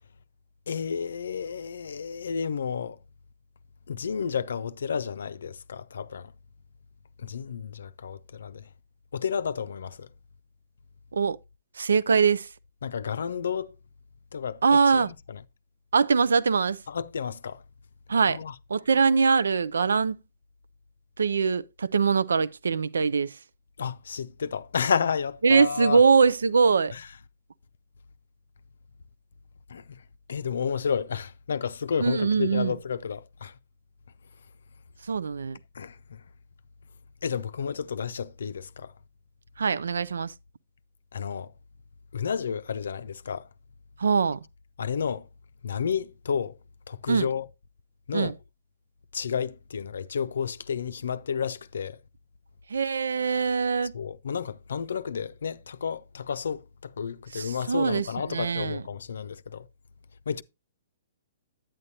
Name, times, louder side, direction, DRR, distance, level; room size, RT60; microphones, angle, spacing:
voice 1, 0.7-3.0 3.9-6.3 7.2-8.7 9.1-10.1 12.8-13.8 14.3-15.4 16.9-17.6 18.3-18.5 23.8-26.0 26.9-27.1 29.7-33.6 35.7-36.2 37.2-38.9 41.1-41.5 42.1-43.5 44.8-45.3 45.6-46.6 46.9-47.5 48.1-48.4 49.1-52.0 53.9-59.7 60.3-60.4, left 6 dB, 70° left, 0.5 m, -31 dB
voice 2, 11.8-12.5 14.6-15.1 15.9-16.8 18.1-18.4 18.7-20.2 21.2-23.3 25.4-26.9 32.0-32.7 35.1-35.6 39.6-40.3 44.0-44.4 47.1-47.3 48.1-48.3 52.7-53.9 57.3-58.8, right 5 dB, 75° right, 0.5 m, -23 dB
9.5 x 9.0 x 2.7 m
figure-of-eight pair, 120°, 0 cm